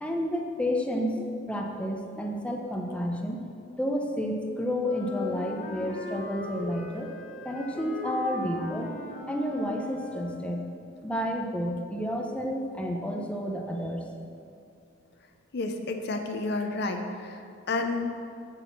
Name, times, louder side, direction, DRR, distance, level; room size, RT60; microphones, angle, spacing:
voice 1, 0.0-3.4 3.8-7.1 7.4-8.9 9.2-10.6 11.0-14.1, equal, 5° left, 1 dB, 0.6 m, -30 dB
Wind instrument woodwind instrument, 4.8-10.6, left 2 dB, 40° left, 1.2 m, -39 dB
voice 2, 15.5-17.4 17.7-18.1, left 3 dB, 60° left, 5 dB, 0.6 m, -30 dB
8.4 x 4.1 x 6.9 m, 2.5 s
head